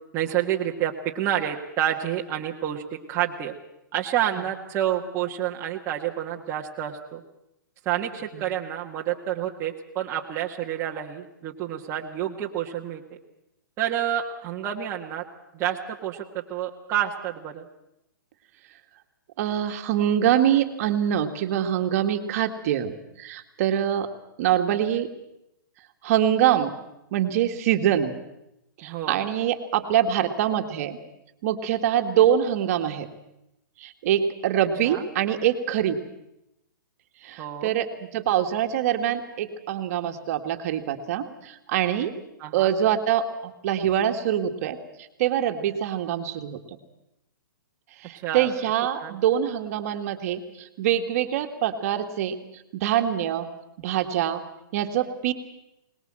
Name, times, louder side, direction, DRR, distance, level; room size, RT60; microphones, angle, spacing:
voice 1, 0.1-3.5 3.9-7.2 7.8-13.0 13.8-15.2 15.5-17.7 28.8-29.2 34.8-35.1 37.4-37.7 42.4-42.7 48.1-48.5 49.0-49.2, right 11 dB, 25° right, -1 dB, 1.5 m, -29 dB
voice 2, 19.4-24.1 24.4-25.1 26.0-26.7 27.1-28.1 28.8-31.0 31.4-33.1 33.8-36.0 37.2-37.9 38.1-42.1 42.5-44.8 45.2-46.6 48.0-52.4 52.7-53.5 53.8-54.4 54.7-55.3, right 10 dB, 45° right, 6 dB, 1.9 m, -24 dB
22.5 x 20.0 x 7.6 m, 0.86 s
hypercardioid pair, 145°, 11 cm